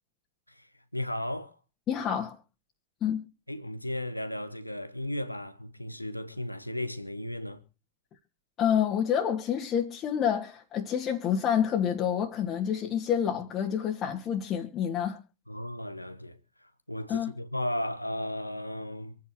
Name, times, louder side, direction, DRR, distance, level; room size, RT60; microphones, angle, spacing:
voice 1, 0.5-1.6 3.5-7.6 15.5-19.2, left 1 dB, 90° left, 1.3 m, -35 dB
voice 2, 1.9-2.4 3.0-3.2 8.6-15.2 17.1-17.3, left 9 dB, 30° left, 2.3 m, -28 dB
26.5 x 9.6 x 3.0 m
figure-of-eight pair, 90°, 0 cm